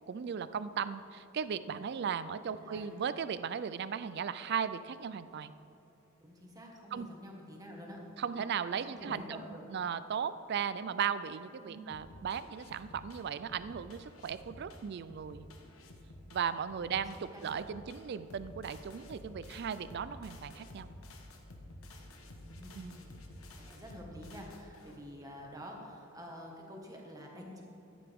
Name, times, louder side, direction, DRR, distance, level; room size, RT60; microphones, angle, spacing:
voice 1, 0.1-5.5 6.9-7.1 8.2-9.4 9.7-15.5 16.3-20.9 22.7-23.0, right 7 dB, 50° right, 14 dB, 0.3 m, -37 dB
voice 2, 2.5-2.9 6.2-8.0 8.8-9.6 11.6-11.8 16.8-17.0 17.3-17.4 22.3-23.2 23.6-27.6, equal, 15° right, -1 dB, 1.6 m, -48 dB
sound 1, 11.9-25.1, left 1 dB, 85° left, 1.2 m, -52 dB
14.5 x 9.9 x 3.6 m, 3.0 s
head